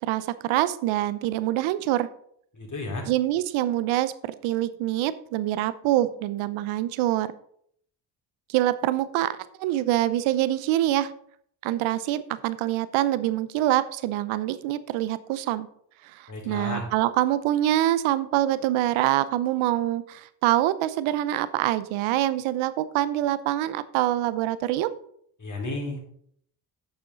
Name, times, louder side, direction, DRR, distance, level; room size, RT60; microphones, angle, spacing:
voice 1, 0.0-2.1 3.1-4.1 4.4-7.3 8.5-11.1 11.6-15.7 16.0-24.9, right 14 dB, 85° right, 15 dB, 0.8 m, -25 dB
voice 2, 2.5-3.1 16.3-16.9 25.4-26.0, left 2 dB, 40° left, -1 dB, 4.1 m, -32 dB
10.0 x 6.7 x 3.9 m, 0.66 s
supercardioid pair, 60°, 47 cm